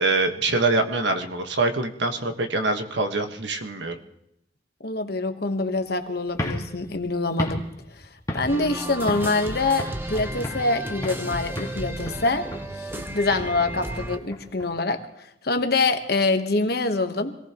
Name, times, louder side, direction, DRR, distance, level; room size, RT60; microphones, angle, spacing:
voice 1, 0.0-3.9 13.0-13.2, right 2 dB, 70° right, 6 dB, 1.4 m, -24 dB
voice 2, 4.8-7.7 8.3-12.5 12.8-17.3, left 3 dB, 55° left, 7 dB, 1.2 m, -25 dB
sound 1, 6.3-8.7 9.1-9.4 9.8-10.7 11.0-11.3 11.6-14.7, left 1 dB, 20° left, 1.7 m, -34 dB
sound 2, 8.5-14.2, right 1 dB, 10° right, 0.7 m, -34 dB
26.0 x 18.0 x 3.0 m, 0.80 s
head